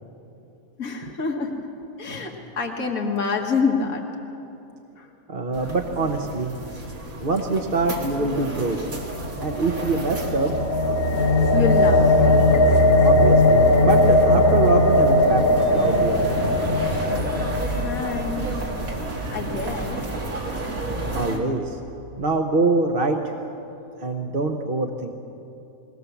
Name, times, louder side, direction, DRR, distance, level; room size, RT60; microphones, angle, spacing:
voice 1, 0.8-1.6 2.0-4.0 5.0-5.1 11.5-12.3 17.6-18.5 19.3-20.0, left 4 dB, 80° left, 1 dB, 2.2 m, -27 dB
voice 2, 5.3-6.5 7.2-8.8 9.2-10.5 13.0-15.4 15.7-16.3 21.1-21.8 22.2-23.2 24.0-25.1, right 3 dB, 45° right, 3 dB, 1.1 m, -24 dB
sound 1, 5.5-21.4, right 2 dB, 80° right, 2.7 m, -32 dB
sound 2, 9.0-19.2, left 1 dB, 45° left, 1.5 m, -19 dB
20.5 x 19.5 x 7.1 m, 2.8 s
omnidirectional pair, 1.5 m